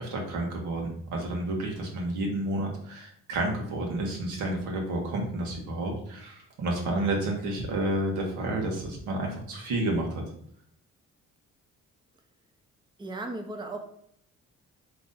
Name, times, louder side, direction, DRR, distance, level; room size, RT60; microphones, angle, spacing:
voice 1, 0.0-10.2, right 1 dB, 85° right, 0 dB, 1.2 m, -30 dB
voice 2, 13.0-13.8, right 2 dB, 15° right, 3 dB, 0.6 m, -36 dB
4.0 x 3.0 x 3.8 m, 0.65 s
cardioid pair, 90°, 30 cm